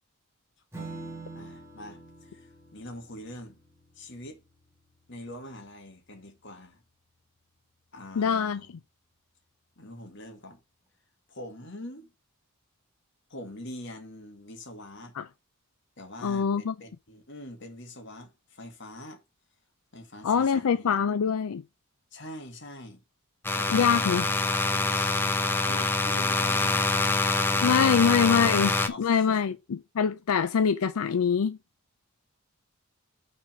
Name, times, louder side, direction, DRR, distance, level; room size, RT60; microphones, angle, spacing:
Strum, 0.7-7.6, right 3 dB, 15° right, 1.7 m, -47 dB
voice 1, 0.8-1.1 1.3-3.6 4.0-4.4 5.1-6.8 7.9-8.7 9.8-10.6 11.3-12.1 13.3-15.2 16.0-19.2 19.9-21.0 22.1-23.0 23.5-24.1 25.7-26.9 27.5-29.4, left 1 dB, 55° left, 1.9 m, -44 dB
voice 2, 8.2-8.6 15.2-15.3 16.2-16.7 20.2-21.6 23.7-24.2 24.9-25.2 27.6-31.6, left 6 dB, 90° left, 0.5 m, -24 dB
sound 1, 23.4-28.9, left 3 dB, 10° left, 0.7 m, -25 dB
5.9 x 4.2 x 5.5 m
head